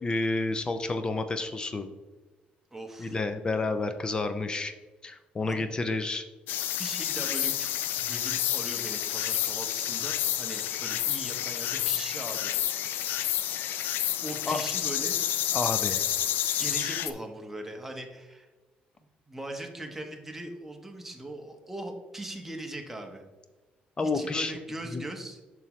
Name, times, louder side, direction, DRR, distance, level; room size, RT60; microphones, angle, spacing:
voice 1, 0.0-1.9 3.0-4.7 5.0-6.2 14.5-14.6 15.5-16.0 24.0-24.5 24.9-25.0, left 3 dB, 25° left, 9 dB, 0.5 m, -30 dB
voice 2, 2.7-3.2 5.4-5.7 6.8-7.7 8.0-12.5 14.2-15.2 16.6-18.5 19.0-23.2 24.0-25.4, right 1 dB, 10° right, 3 dB, 1.0 m, -40 dB
sound 1, 6.5-17.1, left 11 dB, 90° left, 0.4 m, -29 dB
7.0 x 6.1 x 3.1 m, 1.2 s
cardioid pair, 120°, 3 cm